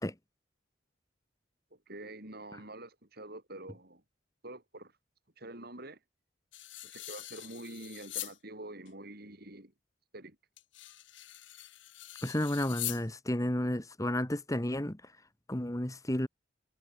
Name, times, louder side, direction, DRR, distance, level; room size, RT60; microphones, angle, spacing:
voice 1, 1.9-4.0 4.4-4.9 5.4-6.0 6.8-9.7 10.1-10.4, right 2 dB, 55° right, 5.8 m, -46 dB
sound 1, 6.5-8.4 8.9-9.0 10.6-13.1, left 16 dB, 80° left, 1.8 m, -42 dB
voice 2, 12.2-15.1 15.5-16.3, left 1 dB, 20° left, 1.5 m, -32 dB
head